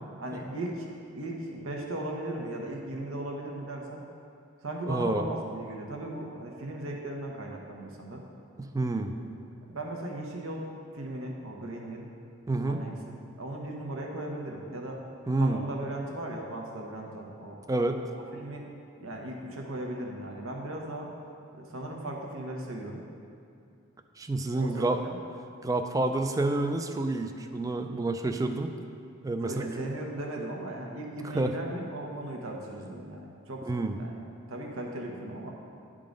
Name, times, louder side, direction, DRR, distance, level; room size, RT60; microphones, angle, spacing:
voice 1, 0.2-4.0 4.6-8.2 9.7-10.7 10.9-12.1 12.7-13.0 13.4-15.0 15.4-17.6 18.3-18.6 19.0-21.1 21.6-23.0 24.5-25.2 29.4-33.7 34.0-34.2 34.5-35.5, right 1 dB, 80° right, 0 dB, 0.9 m, -37 dB
voice 2, 4.9-5.3 8.7-9.1 12.5-12.8 15.3-15.6 17.7-18.0 24.2-25.0 25.6-28.7 29.2-29.8 31.3-31.5 33.7-34.0, right 2 dB, 15° right, 6 dB, 0.3 m, -28 dB
10.5 x 3.8 x 5.1 m, 2.5 s
head